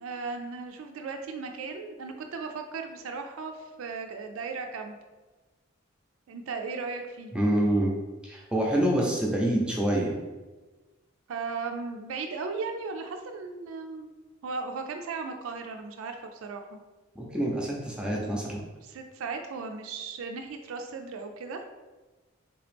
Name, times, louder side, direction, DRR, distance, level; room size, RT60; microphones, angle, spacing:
voice 1, 0.0-4.9 6.3-7.3 11.3-16.8 18.8-21.6, right 4 dB, 80° right, 4 dB, 0.4 m, -36 dB
voice 2, 7.3-7.9 8.2-10.1 17.2-18.6, right 1 dB, 5° right, -2 dB, 0.5 m, -26 dB
3.4 x 2.9 x 3.3 m, 1.2 s
head